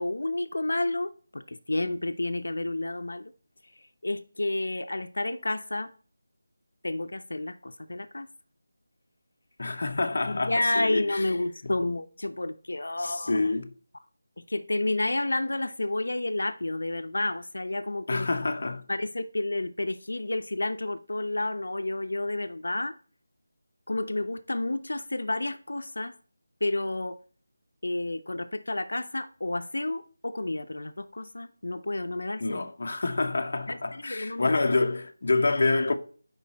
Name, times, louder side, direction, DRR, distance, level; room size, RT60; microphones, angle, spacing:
voice 1, 0.0-3.3 4.0-5.9 6.8-8.3 10.2-13.4 14.5-18.3 18.9-22.9 23.9-26.1 26.6-27.2 27.8-32.6 33.7-34.6, left 2 dB, 80° left, 0.8 m, -30 dB
voice 2, 9.6-11.2 13.0-13.7 18.1-18.8 32.4-35.9, left 3 dB, 40° left, 0.9 m, -27 dB
12.0 x 5.4 x 4.2 m
figure-of-eight pair, 180°, 0 cm